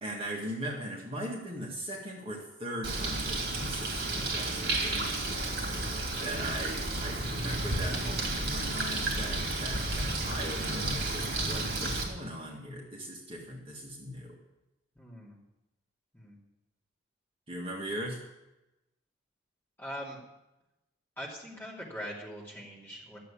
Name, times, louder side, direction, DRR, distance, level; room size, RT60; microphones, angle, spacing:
voice 1, 0.0-5.1 6.2-14.4 17.5-18.2, equal, 25° right, -2 dB, 1.8 m, -39 dB
Bird, 2.8-12.0, right 2 dB, 50° right, 2.8 m, -32 dB
voice 2, 15.0-15.4 16.1-16.4 19.8-20.2 21.2-23.2, equal, 10° left, -4 dB, 2.7 m, -42 dB
12.0 x 7.5 x 8.4 m, 0.95 s
head